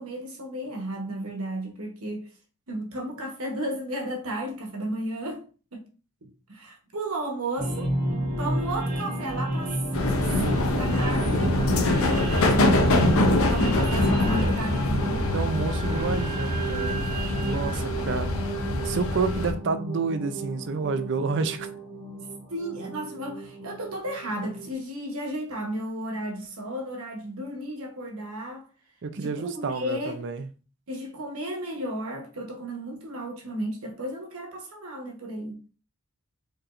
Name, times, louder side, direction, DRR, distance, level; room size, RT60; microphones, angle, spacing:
voice 1, 0.0-2.3 2.7-5.4 5.7-5.8 6.2-7.9 8.4-9.8 10.4-13.2 13.5-15.3 18.0-18.3 22.5-28.7 29.2-30.2 30.9-35.6, right 1 dB, 75° right, 1.1 m, -34 dB
sound 1, 7.6-24.7, right 1 dB, 40° right, 1.0 m, -32 dB
sound 2, 9.9-19.5, left 2 dB, 70° left, 0.6 m, -24 dB
voice 2, 15.3-18.3 18.8-21.7 29.0-30.5, right 4 dB, 55° right, 0.5 m, -29 dB
4.7 x 3.2 x 2.5 m
head